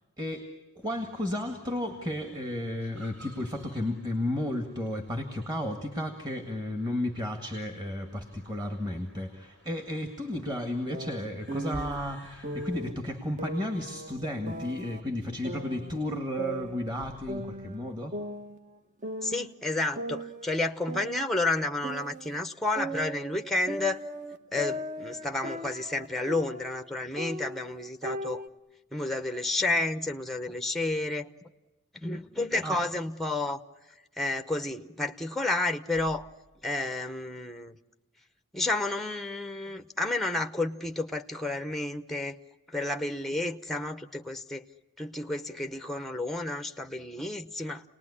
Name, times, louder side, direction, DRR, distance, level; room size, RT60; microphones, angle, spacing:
voice 1, 0.2-0.5 0.8-18.2 32.6-32.8, left 1 dB, 20° right, 5 dB, 1.9 m, -33 dB
sound 1, 0.8-12.7, equal, 55° right, 6.6 m, -56 dB
sound 2, 10.9-12.0 12.4-12.9 13.4-15.0 15.4-17.0 17.3-18.8 19.0-19.5 20.0-22.4 22.8-26.9 27.2-28.5, equal, 35° right, 1.1 m, -38 dB
voice 2, 19.2-24.0 24.5-28.4 28.9-31.3 31.9-33.6 34.2-36.3 36.6-37.8 38.5-42.4 42.7-44.6 45.0-47.8, left 2 dB, ahead, 8 dB, 0.8 m, -31 dB
29.5 x 19.5 x 9.8 m, 1.2 s
head